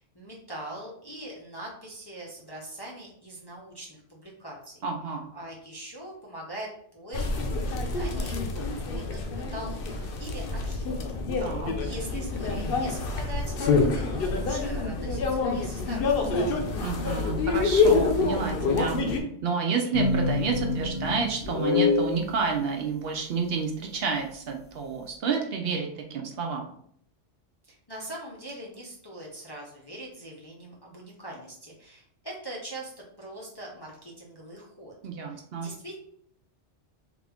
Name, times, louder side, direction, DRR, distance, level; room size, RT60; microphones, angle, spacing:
voice 1, 0.0-4.8 5.3-7.3 7.7-11.0 11.4-16.5 27.6-32.9 33.2-34.9 35.3-36.0, right 1 dB, 30° left, -4 dB, 0.5 m, -42 dB
voice 2, 4.8-5.2 11.4-11.7 16.8-19.0 19.4-26.7 35.0-35.7, right 5 dB, 65° right, 2 dB, 0.7 m, -30 dB
sound 1, 7.1-19.2, left 4 dB, 60° left, 0.7 m, -27 dB
sound 2, 19.9-22.2, left 3 dB, 90° left, 1.1 m, -25 dB
3.4 x 2.5 x 3.4 m, 0.67 s
omnidirectional pair, 1.2 m